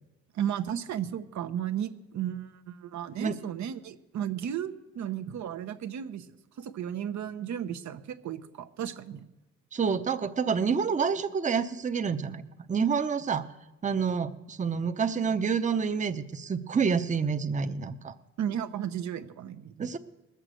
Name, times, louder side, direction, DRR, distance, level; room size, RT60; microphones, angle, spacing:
voice 1, 0.3-9.3 18.4-19.9, right 9 dB, 70° right, 9 dB, 0.9 m, -34 dB
voice 2, 9.7-12.4 12.7-13.5 13.8-18.1 19.8-20.0, right 6 dB, 25° right, 8 dB, 0.8 m, -28 dB
19.5 x 6.8 x 7.7 m, 1.0 s
cardioid pair, 90°, 30 cm